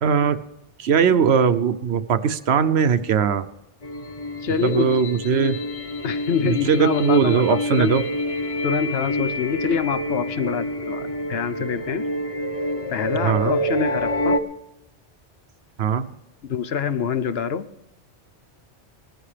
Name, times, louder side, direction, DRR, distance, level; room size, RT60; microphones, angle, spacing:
voice 1, 0.0-0.4 0.8-3.5 4.6-5.6 6.4-8.0 13.2-13.6 15.8-16.0, right 7 dB, 70° right, 12 dB, 0.9 m, -20 dB
sound 1, 3.8-14.4, equal, 35° left, 0.9 m, -27 dB
voice 2, 4.4-5.0 6.0-8.0 8.6-12.0 12.9-14.4 16.4-17.7, left 7 dB, 65° left, 11 dB, 0.9 m, -25 dB
19.0 x 14.0 x 3.3 m, 0.89 s
omnidirectional pair, 1.2 m